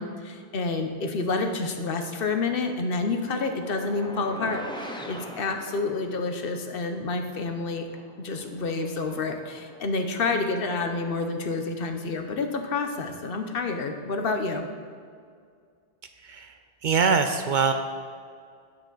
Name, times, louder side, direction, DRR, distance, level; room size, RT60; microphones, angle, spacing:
voice 1, 0.0-7.9 8.2-14.6, left 3 dB, 65° left, 6 dB, 0.9 m, -29 dB
sound 1, 2.8-6.4 7.2-7.3 7.8-11.1, left 1 dB, 5° left, 0.6 m, -43 dB
voice 2, 16.2-17.7, right 5 dB, 60° right, 7 dB, 0.6 m, -24 dB
8.7 x 7.7 x 3.9 m, 2.1 s
omnidirectional pair, 1.0 m